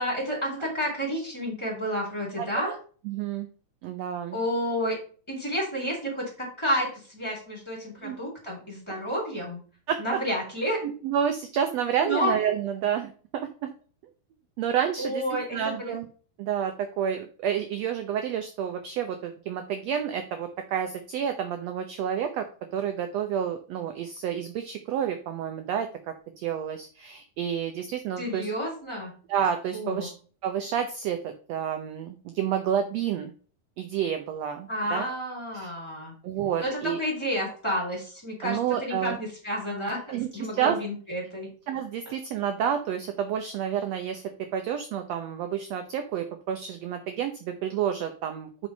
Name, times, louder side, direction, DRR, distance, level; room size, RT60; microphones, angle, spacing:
voice 1, 0.0-2.7 4.3-5.0 5.3-9.6 10.0-10.8 12.0-12.3 15.0-16.0 28.2-29.1 29.7-30.1 34.7-36.1 36.6-41.5, equal, 10° left, -1 dB, 4.2 m, -30 dB
voice 2, 2.4-2.8 3.0-3.5 3.8-4.4 8.0-8.2 9.9-10.0 10.8-13.7 14.6-15.2 15.5-16.1 16.4-22.5 22.7-28.5 29.3-30.1 30.4-33.3 33.8-35.0 35.6-35.7 36.2-37.0 38.4-39.2 40.1-40.3 40.5-40.8 41.7-44.2 44.5-48.7, right 9 dB, 75° right, 7 dB, 1.6 m, -29 dB
6.1 x 6.1 x 5.1 m, 0.40 s
omnidirectional pair, 3.9 m